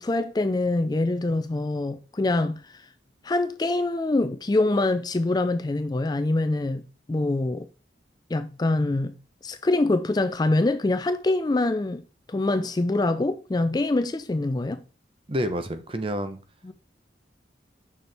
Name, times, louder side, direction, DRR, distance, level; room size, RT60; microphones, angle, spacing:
voice 1, 0.0-2.6 3.2-6.8 7.1-7.7 8.3-9.1 9.4-12.0 12.3-14.8 16.6-16.7, left 2 dB, 20° left, 0.4 m, -24 dB
voice 2, 15.3-16.4, equal, 30° right, 0.8 m, -28 dB
6.7 x 6.0 x 3.4 m
head